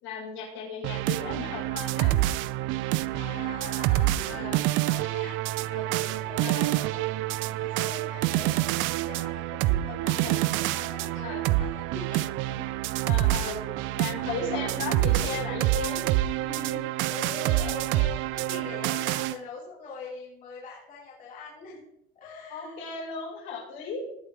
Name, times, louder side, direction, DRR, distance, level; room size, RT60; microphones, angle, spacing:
voice 1, 0.0-2.1 4.2-4.6 6.4-6.7 10.1-10.4 11.2-11.5 13.0-13.6 14.0-16.0 16.4-16.8 22.5-24.0, left 4 dB, 65° left, -2 dB, 5.9 m, -36 dB
sound 1, 0.8-19.4, right 16 dB, 65° right, 0.5 m, -27 dB
voice 2, 3.1-7.1 7.4-12.6 13.6-13.8 14.5-14.7 17.1-21.8 22.1-22.8, left 4 dB, 40° left, -7 dB, 4.8 m, -43 dB
19.0 x 8.2 x 3.7 m, 0.77 s
cardioid pair, 145°, 21 cm